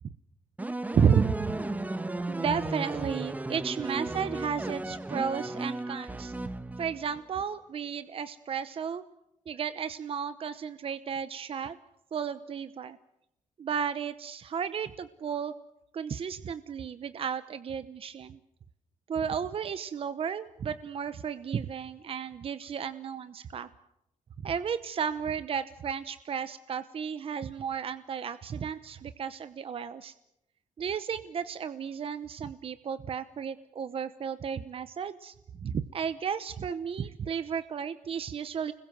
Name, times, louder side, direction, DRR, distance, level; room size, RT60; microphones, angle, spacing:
sound 1, 0.6-7.2, right 2 dB, 10° right, 1.3 m, -35 dB
voice 1, 0.9-1.4 2.3-6.3 6.8-9.0 9.5-11.8 12.1-13.0 13.6-15.5 15.9-18.4 19.1-23.7 24.4-30.1 30.8-35.3 35.6-38.7, right 7 dB, 45° right, 13 dB, 0.9 m, -33 dB
30.0 x 21.5 x 7.8 m, 0.83 s
wide cardioid pair, 155°, 13 cm